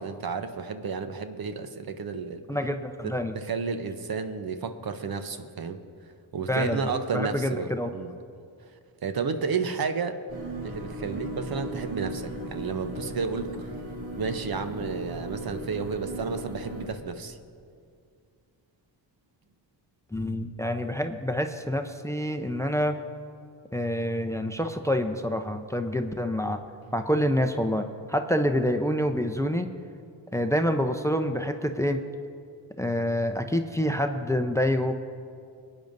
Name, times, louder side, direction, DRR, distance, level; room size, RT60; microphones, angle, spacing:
voice 1, 0.0-2.4 3.0-5.8 6.3-8.1 9.0-10.2 10.6-13.8 14.2-17.4, right 5 dB, 50° right, 9 dB, 0.9 m, -32 dB
voice 2, 2.5-3.3 6.5-6.8 7.1-7.9 20.1-23.0 23.7-26.6 26.9-29.7 30.3-32.0 32.8-34.9, equal, 5° left, 7 dB, 0.7 m, -27 dB
sound 1, 10.3-16.9, right 1 dB, 80° right, 3.1 m, -37 dB
23.0 x 9.0 x 2.7 m, 2.3 s
supercardioid pair, 45°, 47 cm